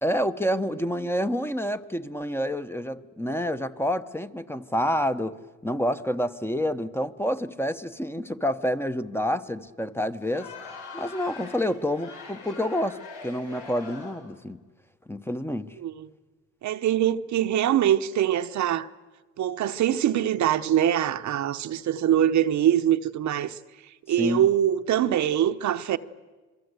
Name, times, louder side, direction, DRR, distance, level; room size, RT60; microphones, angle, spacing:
voice 1, 0.0-5.4 5.6-10.5 10.9-14.6 15.1-15.7 24.2-24.4, equal, 10° left, 1.0 m, -28 dB
Crowd, 10.2-14.4, left 4 dB, 85° left, 6.8 m, -43 dB
voice 2, 15.8-16.1 16.6-18.9 19.4-23.6 24.1-26.0, right 11 dB, 70° right, 0.9 m, -23 dB
26.5 x 22.5 x 8.1 m
cardioid pair, 90°, 30 cm